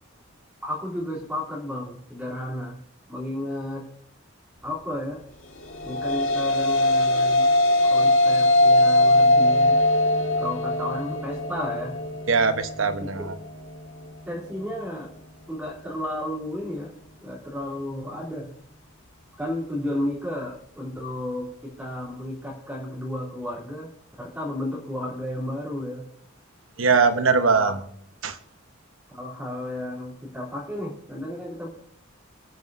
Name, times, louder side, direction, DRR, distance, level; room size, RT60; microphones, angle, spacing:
voice 1, 0.6-2.8 3.1-3.9 4.6-5.2 5.8-7.5 7.9-9.8 10.4-12.0 13.0-13.3 14.3-15.1 15.5-16.9 17.2-18.5 19.4-23.9 24.2-26.1 27.5-27.7 29.1-31.7, left 1 dB, 5° right, -7 dB, 3.5 m, -32 dB
sound 1, 5.6-14.2, left 1 dB, 75° left, 2.1 m, -21 dB
voice 2, 12.3-13.3 26.8-27.8 28.2-28.4, right 4 dB, 80° right, 9 dB, 1.2 m, -21 dB
28.0 x 9.6 x 2.7 m, 0.66 s
head